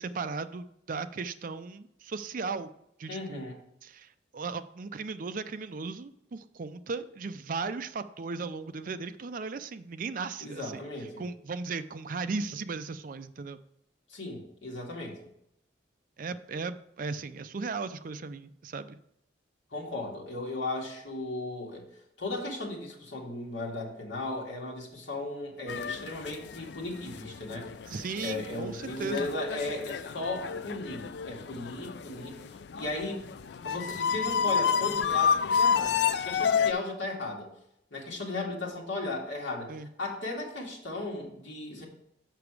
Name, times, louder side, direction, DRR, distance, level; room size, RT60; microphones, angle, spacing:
voice 1, 0.0-2.7 3.0-3.5 3.8-10.9 11.2-13.6 16.2-19.0 27.9-29.3 39.7-39.9, right 4 dB, 45° right, 11 dB, 0.4 m, -36 dB
voice 2, 3.1-3.6 10.4-11.2 14.1-15.2 19.7-21.8 22.2-27.7 28.2-32.4 32.7-33.3 33.6-36.0 36.2-37.5 37.9-41.9, left 2 dB, 80° left, -2 dB, 2.0 m, -36 dB
sound 1, 25.7-36.7, left 7 dB, 60° left, 0.4 m, -30 dB
6.9 x 5.9 x 4.7 m, 0.77 s
head